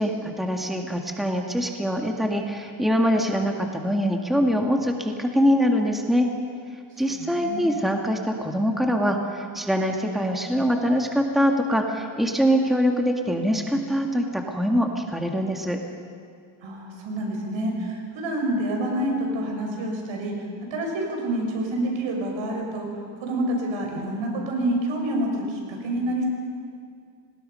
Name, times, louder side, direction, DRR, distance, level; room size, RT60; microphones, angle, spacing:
voice 1, 0.0-6.3 7.0-15.8, equal, ahead, 2 dB, 1.9 m, -23 dB
voice 2, 7.4-7.7 16.6-20.3 20.7-22.9 23.2-26.3, right 1 dB, 75° right, 1 dB, 6.2 m, -27 dB
29.0 x 20.0 x 5.7 m, 2.2 s
cardioid pair, 115°, 47 cm